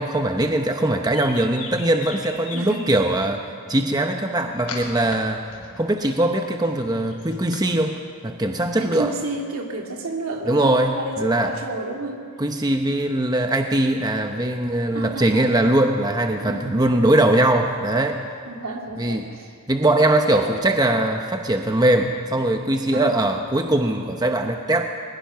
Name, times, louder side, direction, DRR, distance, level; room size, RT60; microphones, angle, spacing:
voice 1, 0.0-5.4 5.8-9.1 10.5-11.5 12.4-18.2 19.0-19.3 19.7-24.9, right 1 dB, 15° right, 4 dB, 0.8 m, -21 dB
sound 1, 0.8-3.1 4.0-5.1 5.5-7.6, left 4 dB, 85° left, 4.3 m, -38 dB
voice 2, 8.8-12.2 14.9-15.5 16.4-16.6 18.5-19.5 20.3-20.5 22.9-23.1, right 2 dB, 70° right, 1 dB, 2.6 m, -31 dB
21.5 x 21.0 x 5.8 m, 2.2 s
head